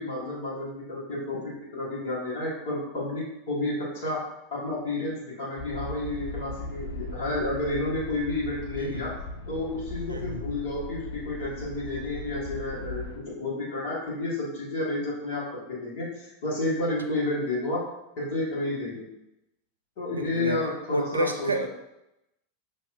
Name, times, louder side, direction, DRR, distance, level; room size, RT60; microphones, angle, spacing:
voice 1, 0.0-4.2 4.5-9.1 9.5-17.8 18.2-19.0 20.0-21.5, left 2 dB, 55° left, -7 dB, 1.2 m, -31 dB
sound 1, 5.6-13.2, left 2 dB, 75° left, 0.5 m, -38 dB
voice 2, 8.8-9.1 10.1-10.6 20.1-20.6 20.9-21.7, right 1 dB, 80° right, 6 dB, 0.4 m, -29 dB
5.7 x 2.7 x 2.3 m, 0.87 s
figure-of-eight pair, 85°, 0 cm